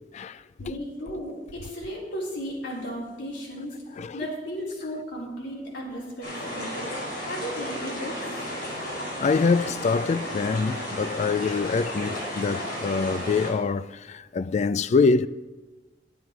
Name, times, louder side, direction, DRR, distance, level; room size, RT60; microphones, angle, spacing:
voice 1, 0.6-6.7 7.2-8.4, equal, 90° left, 3.8 m, -35 dB
sound 1, 6.2-13.5, equal, 65° left, 4.4 m, -33 dB
voice 2, 9.2-15.3, left 4 dB, 40° left, 0.3 m, -25 dB
11.0 x 9.5 x 4.6 m
head